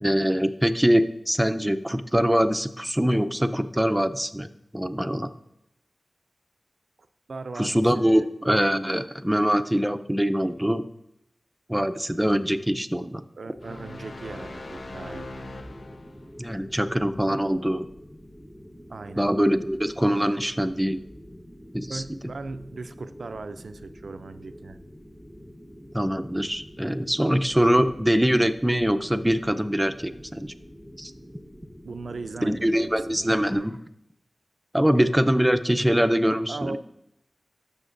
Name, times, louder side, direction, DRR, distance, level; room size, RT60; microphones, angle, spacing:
voice 1, 0.0-4.5 4.7-5.3 7.6-10.8 11.7-13.2 16.4-17.9 19.2-21.0 21.7-22.0 25.9-30.5 31.0-31.1 32.4-33.8 34.7-36.8, equal, 10° right, 9 dB, 0.5 m, -23 dB
voice 2, 7.3-8.3 13.4-15.3 18.9-19.3 21.9-24.8 31.8-33.3 36.5-36.8, right 3 dB, 80° right, 11 dB, 0.4 m, -38 dB
sound 1, 13.6-16.4, left 2 dB, 65° left, 0.5 m, -40 dB
sound 2, 13.6-33.6, equal, 20° left, 1.3 m, -47 dB
12.5 x 7.1 x 2.6 m, 0.82 s
cardioid pair, 45°, 0 cm